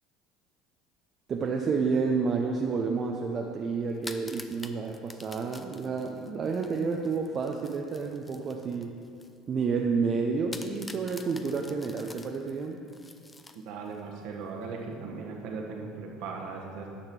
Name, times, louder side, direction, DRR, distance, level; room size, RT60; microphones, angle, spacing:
voice 1, 1.3-9.0 9.5-12.8, right 5 dB, 40° right, 2 dB, 0.6 m, -30 dB
sound 1, 3.9-9.4 9.7-9.8 10.5-14.0, left 2 dB, 20° left, 0.6 m, -47 dB
voice 2, 13.6-16.9, right 4 dB, 65° right, 0 dB, 1.4 m, -38 dB
9.9 x 6.7 x 4.4 m, 2.5 s
hypercardioid pair, 65°, 0 cm